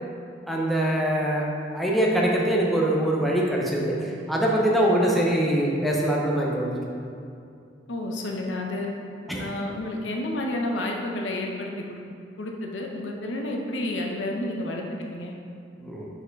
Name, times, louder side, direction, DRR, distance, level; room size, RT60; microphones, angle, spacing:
voice 1, 0.5-1.5 1.7-6.7 9.3-9.4 15.8-16.1, right 1 dB, ahead, -4 dB, 0.7 m, -23 dB
voice 2, 7.9-8.9 9.4-12.0 12.4-15.3, left 1 dB, 85° left, 1 dB, 0.8 m, -30 dB
4.9 x 4.3 x 5.1 m, 2.5 s
head